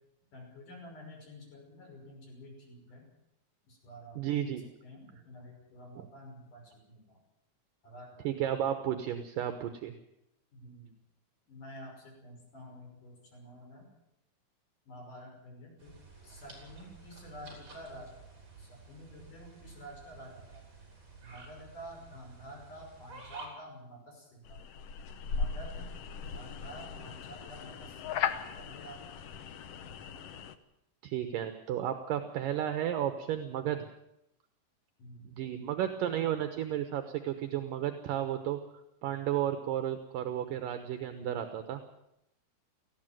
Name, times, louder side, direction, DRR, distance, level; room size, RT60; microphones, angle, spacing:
voice 1, 0.3-3.0 3.6-4.5 4.8-7.2 7.8-8.3 10.5-10.9 11.5-13.9 14.9-16.0 16.2-18.2 18.6-20.6 21.2-24.6 25.2-25.9 26.3-28.0 28.6-29.0 35.0-35.5, equal, 55° left, 0 dB, 7.2 m, -49 dB
voice 2, 4.2-4.6 6.0-6.1 8.2-9.9 31.0-33.9 35.2-38.6 39.0-41.8, right 11 dB, 70° right, 8 dB, 2.5 m, -33 dB
sound 1, 15.8-23.5, right 3 dB, 30° right, 5.7 m, -51 dB
sound 2, 24.4-30.5, left 6 dB, 75° left, 1.4 m, -38 dB
19.0 x 15.0 x 9.1 m, 0.83 s
omnidirectional pair, 4.3 m